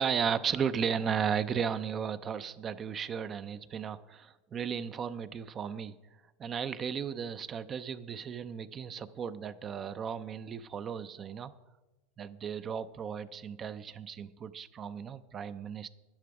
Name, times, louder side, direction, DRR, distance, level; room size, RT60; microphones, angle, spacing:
voice 1, 0.0-5.9 6.4-11.5 12.2-15.9, right 7 dB, 25° right, 13 dB, 0.5 m, -35 dB
11.0 x 10.5 x 4.8 m, 1.1 s
supercardioid pair, 130°, 0 cm